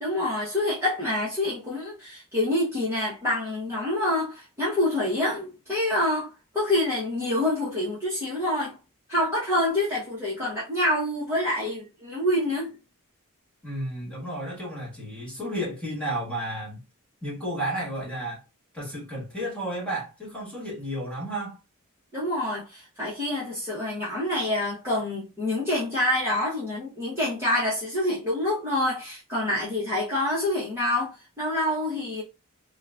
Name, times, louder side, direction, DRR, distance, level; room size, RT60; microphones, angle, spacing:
voice 1, 0.0-8.8 9.1-12.7 22.1-32.2, left 1 dB, 10° right, 1.0 m, -27 dB
voice 2, 13.6-16.8 17.2-18.4 18.7-21.6, right 1 dB, 5° left, 1.6 m, -32 dB
3.7 x 2.4 x 2.4 m
head